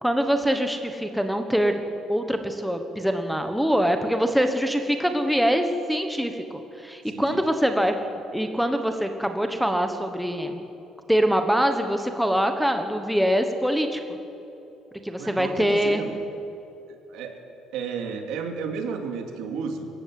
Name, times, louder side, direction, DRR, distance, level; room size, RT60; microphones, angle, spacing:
voice 1, 0.0-1.8 2.1-8.0 8.3-10.7 11.1-14.0 15.0-16.0, equal, ahead, 6 dB, 1.2 m, -24 dB
voice 2, 7.1-7.4 15.1-16.3 17.1-17.4 17.7-19.9, right 5 dB, 75° right, 4 dB, 2.7 m, -32 dB
26.5 x 15.0 x 7.8 m, 3.0 s
cardioid pair, 165°, 0 cm